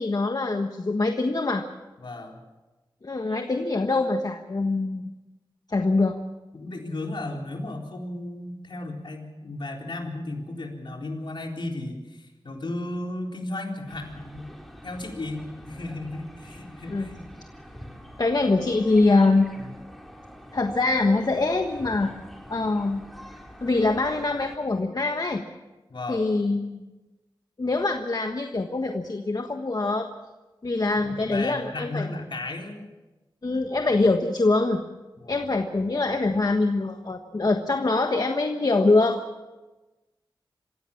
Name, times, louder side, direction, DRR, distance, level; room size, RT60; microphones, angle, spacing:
voice 1, 0.0-1.7 3.0-5.1 5.7-6.2 16.9-17.1 18.2-19.5 20.5-22.1 22.5-23.0 23.6-25.4 26.1-26.8 27.6-30.1 30.6-32.0 33.4-34.8 35.3-39.2, left 3 dB, 50° left, 5 dB, 1.4 m, -24 dB
voice 2, 2.0-2.4 6.5-14.5 14.8-17.3 19.6-19.8 25.9-26.3 31.0-32.9 35.2-35.5, left 2 dB, 65° left, 1 dB, 4.1 m, -35 dB
sound 1, 13.9-24.6, equal, ahead, 3.2 m, -45 dB
26.5 x 16.0 x 7.2 m, 1.1 s
wide cardioid pair, 75°, 9 cm